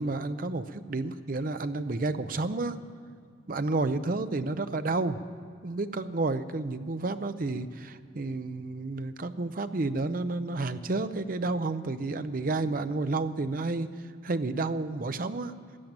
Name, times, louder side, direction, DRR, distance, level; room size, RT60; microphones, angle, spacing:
voice 1, 0.0-2.8 3.5-5.2 5.6-15.5, right 3 dB, 45° right, 11 dB, 0.6 m, -31 dB
14.0 x 10.0 x 8.8 m, 2.3 s
head